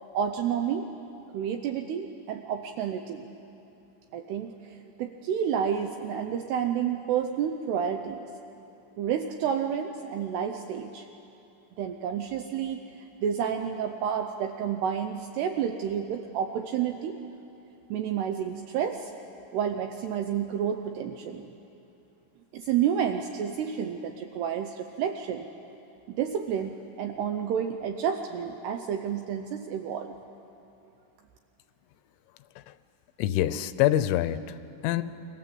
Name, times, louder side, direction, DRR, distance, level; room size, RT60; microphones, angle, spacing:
voice 1, 0.1-0.9 1.3-3.2 4.1-4.5 5.0-8.2 9.0-11.1 11.8-12.8 13.2-17.2 17.9-19.1 19.5-21.5 22.5-25.5 26.1-30.1, right 8 dB, 80° right, 5 dB, 2.4 m, -30 dB
voice 2, 33.2-34.6 34.8-35.0, left 13 dB, 80° left, 13 dB, 3.1 m, -25 dB
29.5 x 23.5 x 7.9 m, 2.9 s
omnidirectional pair, 5.7 m